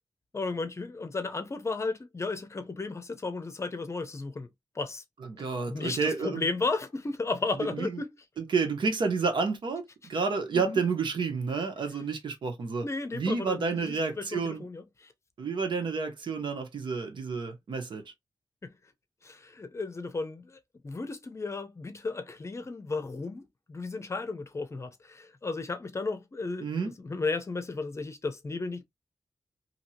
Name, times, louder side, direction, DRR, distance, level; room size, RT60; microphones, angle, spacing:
voice 1, 0.3-4.5 4.7-5.0 5.7-8.1 10.5-10.8 12.8-15.1 18.6-18.7 19.2-26.7 27.0-28.8, left 3 dB, 35° left, 0.6 m, -34 dB
voice 2, 5.2-6.5 7.7-8.0 8.4-12.8 13.1-14.6 15.4-18.0 26.6-26.9, right 4 dB, 75° right, 1.0 m, -30 dB
2.8 x 2.7 x 2.8 m
cardioid pair, 75°, 8 cm